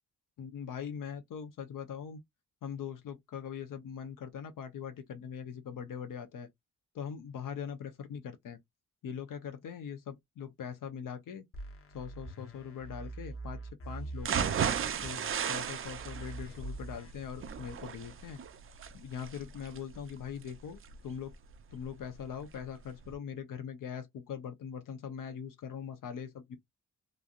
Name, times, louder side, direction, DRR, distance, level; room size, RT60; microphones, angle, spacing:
voice 1, 0.4-2.2 2.6-6.5 6.9-8.6 9.0-11.4 11.9-13.6 13.8-14.6 15.0-15.2 15.5-18.4 18.9-21.3 21.7-26.6, left 7 dB, 80° left, 0.8 m, -41 dB
sound 1, 11.5-17.1, right 2 dB, 45° left, 0.9 m, -44 dB
sound 2, 14.2-22.2 22.6-22.7 23.0-23.1, right 8 dB, 40° right, 0.4 m, -36 dB
3.1 x 2.6 x 2.4 m
wide cardioid pair, 145°, 32 cm